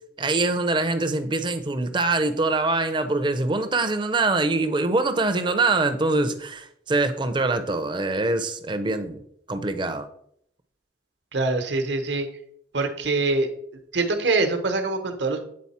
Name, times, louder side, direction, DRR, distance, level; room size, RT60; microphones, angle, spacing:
voice 1, 0.2-9.2 9.5-10.1, right 2 dB, 25° right, 9 dB, 0.5 m, -24 dB
voice 2, 11.3-12.3 12.7-13.5 13.9-15.4, right 3 dB, 70° right, 6 dB, 1.0 m, -24 dB
8.5 x 3.9 x 4.2 m, 0.70 s
head